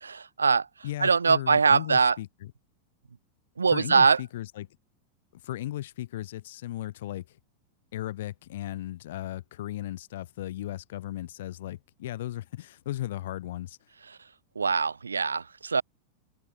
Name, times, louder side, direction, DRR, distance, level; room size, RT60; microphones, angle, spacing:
voice 1, 0.0-0.7 1.0-2.2 3.6-4.2 14.6-15.8, right 5 dB, 75° right, 0.6 m, -22 dB
voice 2, 0.8-2.5 3.7-4.7 5.3-7.4 7.9-13.8, left 14 dB, 55° left, 1.6 m, -36 dB
open air
figure-of-eight pair, 90°, 0 cm